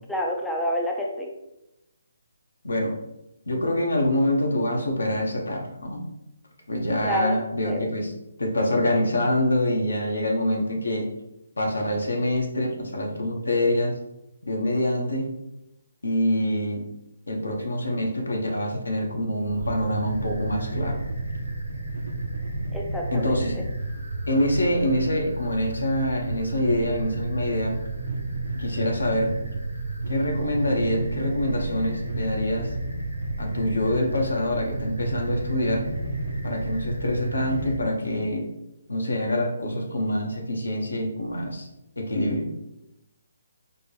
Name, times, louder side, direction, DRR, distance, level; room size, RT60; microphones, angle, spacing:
voice 1, 0.1-1.3 7.0-7.4 7.7-7.9 22.7-23.5, equal, 5° left, -1 dB, 0.4 m, -28 dB
voice 2, 3.5-6.1 6.7-8.1 8.4-11.1 11.6-14.0 14.5-15.3 16.0-16.8 17.3-21.0 23.1-23.6 24.3-27.8 28.6-29.3 30.1-32.7 33.4-35.9 36.4-38.4 38.9-41.7 42.0-42.5, left 1 dB, 80° left, 1 dB, 0.8 m, -25 dB
sound 1, 19.4-37.8, right 2 dB, 85° right, 0.7 m, -31 dB
4.3 x 2.2 x 3.1 m, 0.88 s
figure-of-eight pair, 145°, 0 cm